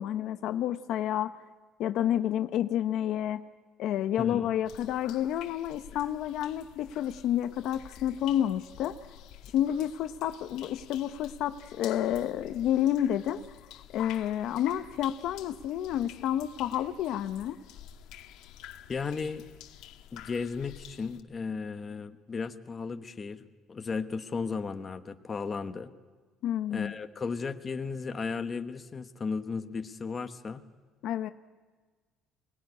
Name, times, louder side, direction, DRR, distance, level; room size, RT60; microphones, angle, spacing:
voice 1, 0.0-1.3 1.8-3.4 3.8-9.0 9.5-13.4 13.9-17.6 26.4-26.9 31.0-31.3, left 11 dB, 65° left, 10 dB, 0.8 m, -29 dB
voice 2, 4.2-4.5 18.9-19.4 20.1-25.9 26.7-30.6, left 5 dB, 25° left, 7 dB, 1.1 m, -35 dB
sound 1, 4.6-21.2, left 11 dB, 80° left, 1.3 m, -49 dB
23.0 x 19.0 x 9.6 m, 1.4 s
cardioid pair, 145°, 0 cm